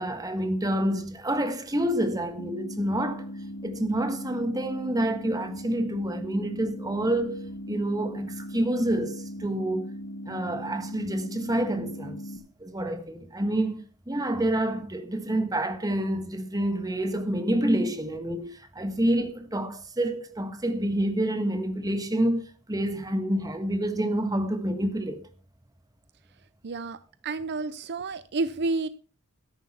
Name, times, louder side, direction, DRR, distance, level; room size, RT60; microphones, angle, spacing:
voice 1, 0.0-3.3 3.6-9.9 10.3-12.2 12.6-25.3, right 1 dB, 15° right, 1.5 m, -28 dB
sound 1, 2.4-12.4, left 1 dB, 60° left, 1.5 m, -39 dB
voice 2, 26.6-27.0 27.2-28.9, right 3 dB, 50° right, 0.6 m, -30 dB
13.0 x 10.5 x 4.4 m
head